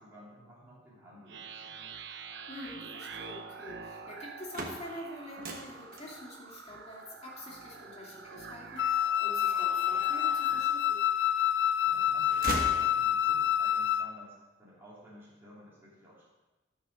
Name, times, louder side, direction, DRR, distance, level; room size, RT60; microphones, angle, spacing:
voice 1, 0.0-2.0 11.8-16.2, equal, 10° right, -8 dB, 2.7 m, -54 dB
sound 1, 1.3-10.7, right 5 dB, 70° right, 0.7 m, -46 dB
voice 2, 2.5-11.0, left 1 dB, 35° left, -4 dB, 2.5 m, -46 dB
sound 2, 4.2-10.2 10.7-11.6 11.9-13.5, right 2 dB, 45° right, 1.2 m, -41 dB
Wind instrument woodwind instrument, 8.8-14.1, left 10 dB, 70° left, 0.4 m, -28 dB
11.0 x 6.8 x 5.1 m, 1.1 s
head